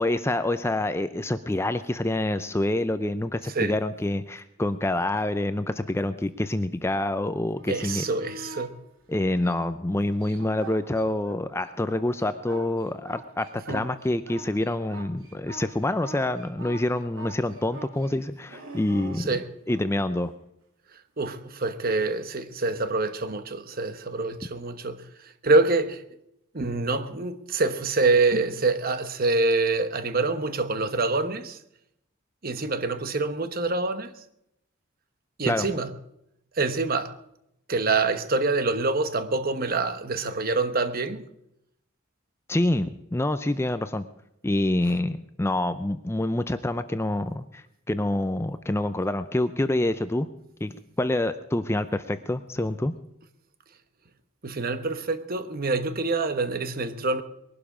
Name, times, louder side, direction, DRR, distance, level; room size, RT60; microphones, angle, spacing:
voice 1, 0.0-8.0 9.1-19.3 19.7-20.3 35.5-35.7 42.5-44.1 44.4-50.3 50.6-52.9, left 1 dB, 10° left, 0.5 m, -27 dB
sound 1, 7.5-8.7 9.3-11.4 11.7-19.9 22.7-22.8, right 2 dB, 80° right, 3.1 m, -44 dB
voice 2, 7.7-8.8 13.7-13.9 19.2-19.5 21.2-26.0 26.5-31.6 32.4-34.1 35.4-35.9 36.5-37.1 37.7-41.2 54.4-57.2, right 3 dB, 45° right, 1.1 m, -26 dB
21.0 x 12.0 x 5.0 m
head